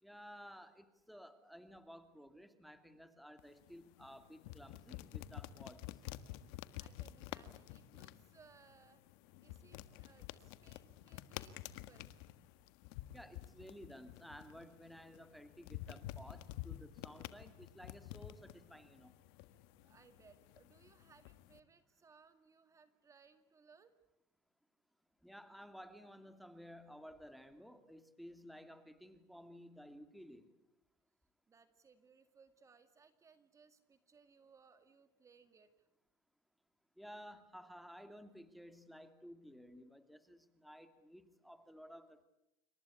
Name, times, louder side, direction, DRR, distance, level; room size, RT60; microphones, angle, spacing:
voice 1, 0.0-5.8 13.1-19.1 25.2-30.5 37.0-42.2, equal, ahead, 10 dB, 2.4 m, -55 dB
sound 1, 3.4-21.6, left 14 dB, 75° left, 1.7 m, -51 dB
voice 2, 6.5-9.0 9.4-12.1 19.8-23.9 31.5-35.9, right 5 dB, 25° right, 10 dB, 2.1 m, -66 dB
28.0 x 25.0 x 8.4 m, 0.89 s
supercardioid pair, 120°, 13 cm